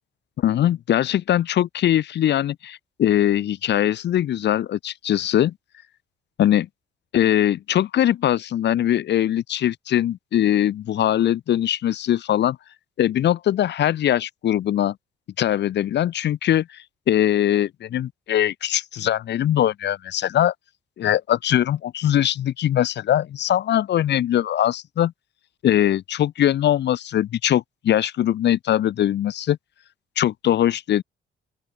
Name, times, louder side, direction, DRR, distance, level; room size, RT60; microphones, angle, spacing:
voice 1, 0.4-5.5 6.4-6.7 7.1-12.6 13.0-15.0 15.4-20.5 21.0-25.1 25.6-29.6 30.2-31.0, left 11 dB, 60° left, 0.8 m, -21 dB
open air
cardioid pair, 90°, 20 cm